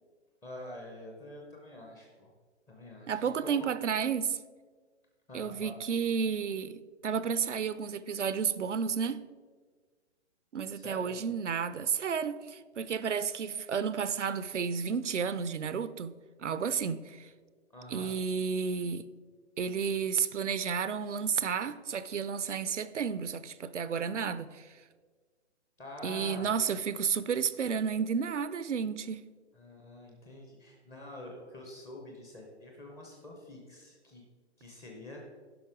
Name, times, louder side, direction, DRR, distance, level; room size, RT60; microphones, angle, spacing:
voice 1, 0.4-2.3 2.7-3.7 5.3-5.8 10.7-11.2 17.7-18.1 25.8-26.5 29.5-34.2 34.6-35.2, left 1 dB, 10° left, 0.5 m, -46 dB
voice 2, 3.1-4.4 5.3-9.3 10.5-17.3 17.9-19.1 19.6-24.7 26.0-29.3, right 6 dB, 80° right, 0.6 m, -32 dB
11.5 x 5.4 x 4.8 m
figure-of-eight pair, 130°, 35 cm